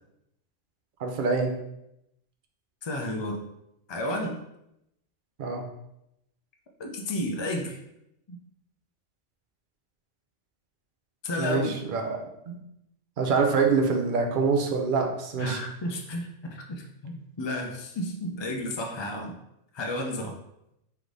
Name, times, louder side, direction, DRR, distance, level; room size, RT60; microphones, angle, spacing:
voice 1, 1.0-1.5 5.4-5.6 11.4-12.2 12.5-12.6 13.2-15.6, right 4 dB, 50° right, 3 dB, 0.7 m, -25 dB
voice 2, 2.8-3.5 3.9-4.4 6.8-7.8 8.3-8.4 11.2-11.7 15.4-19.3 19.7-20.4, left 1 dB, 45° left, 2 dB, 0.3 m, -32 dB
3.4 x 3.1 x 3.9 m, 0.82 s
omnidirectional pair, 1.2 m